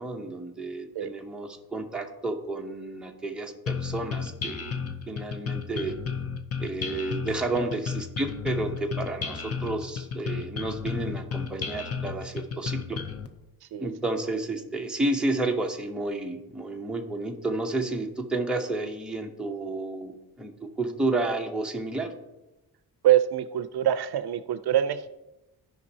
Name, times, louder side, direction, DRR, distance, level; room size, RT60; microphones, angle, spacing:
voice 1, 0.0-4.7 5.1-6.0 6.6-13.0 13.7-22.1, right 2 dB, ahead, 1 dB, 0.6 m, -31 dB
sound 1, 3.7-13.3, left 6 dB, 40° left, 0.6 m, -33 dB
voice 2, 23.0-25.1, right 11 dB, 70° right, 12 dB, 0.5 m, -24 dB
15.0 x 5.2 x 2.7 m, 0.99 s
wide cardioid pair, 175°, 40 cm